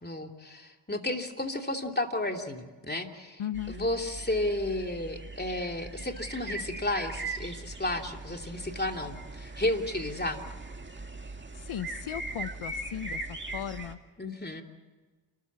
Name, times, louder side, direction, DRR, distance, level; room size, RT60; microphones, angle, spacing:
voice 1, 0.0-3.4 3.7-10.4 14.2-14.6, left 1 dB, 20° left, 4 dB, 2.9 m, -32 dB
voice 2, 3.4-3.8 11.5-14.0, left 10 dB, 80° left, 13 dB, 0.8 m, -37 dB
sound 1, 3.5-13.9, right 2 dB, 25° right, 2.2 m, -40 dB
29.5 x 14.0 x 7.4 m, 1.3 s
cardioid pair, 45°, 48 cm